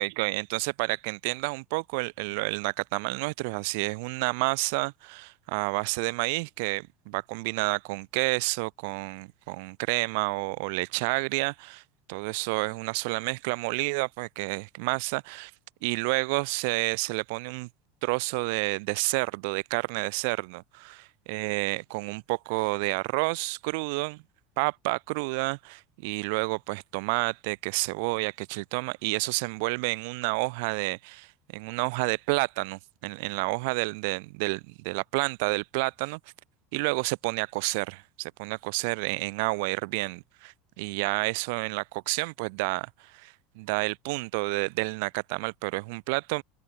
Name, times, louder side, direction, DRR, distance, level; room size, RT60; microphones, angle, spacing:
voice 1, 0.0-11.8 12.1-15.5 15.8-17.7 18.0-24.2 24.6-36.2 36.7-46.4, right 29 dB, 70° right, 4.8 m, -30 dB
supercardioid pair, 125°, 0 cm